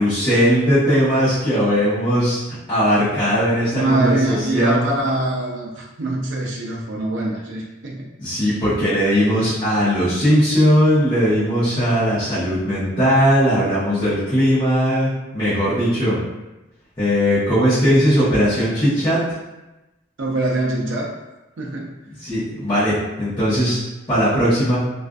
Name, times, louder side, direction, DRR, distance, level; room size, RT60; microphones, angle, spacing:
voice 1, 0.0-2.4 2.7-4.8 8.2-16.2 17.0-19.2 22.2-23.8 24.1-24.8, equal, 25° left, -14 dB, 0.8 m, -18 dB
voice 2, 3.7-8.1 20.2-21.1 21.6-21.9, right 2 dB, 70° right, -3 dB, 0.4 m, -23 dB
2.4 x 2.4 x 2.2 m, 1.0 s
head